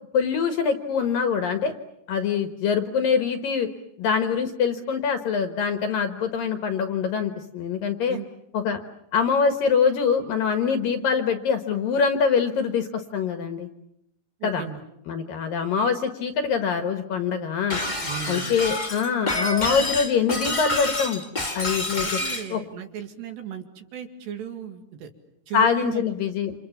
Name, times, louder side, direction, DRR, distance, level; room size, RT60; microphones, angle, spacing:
voice 1, 0.1-1.7 2.1-3.7 4.0-8.2 8.5-8.8 9.1-13.7 14.4-14.6 15.1-17.8 18.3-21.2 21.5-22.1 22.5-22.6 25.5-26.5, left 6 dB, 65° left, 8 dB, 2.5 m, -24 dB
voice 2, 14.4-14.8 18.0-18.5 22.0-25.1 25.5-26.0, right 8 dB, 65° right, 6 dB, 4.1 m, -36 dB
Shatter, 17.7-22.5, left 2 dB, 25° left, 0.8 m, -28 dB
29.5 x 27.5 x 7.2 m, 0.77 s
omnidirectional pair, 5.4 m